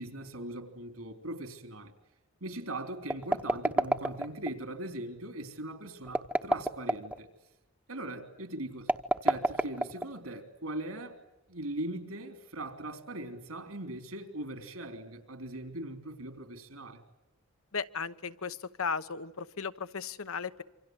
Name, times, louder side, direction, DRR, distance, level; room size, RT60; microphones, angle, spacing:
voice 1, 0.0-1.9 2.4-7.3 7.9-8.9 9.2-11.2 11.5-17.0, right 1 dB, 75° right, 3.6 m, -40 dB
sound 1, 3.0-4.5 6.0-7.2 8.8-10.3, right 1 dB, 5° right, 1.0 m, -28 dB
voice 2, 17.7-20.6, left 5 dB, 70° left, 1.0 m, -36 dB
28.0 x 25.5 x 8.0 m
head